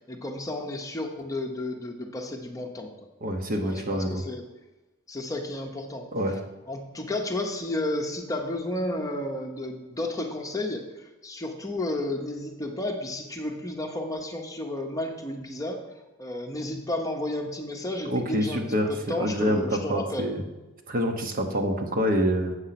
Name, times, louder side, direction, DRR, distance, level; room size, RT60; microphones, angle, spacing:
voice 1, 0.1-2.9 3.6-4.4 5.1-6.1 6.7-15.8 16.2-20.3, left 1 dB, 15° left, 3 dB, 0.8 m, -32 dB
voice 2, 3.2-4.2 6.1-6.3 18.0-18.9 19.2-20.4 20.9-22.6, equal, 40° right, 4 dB, 1.0 m, -26 dB
8.0 x 6.4 x 5.8 m, 1.1 s
head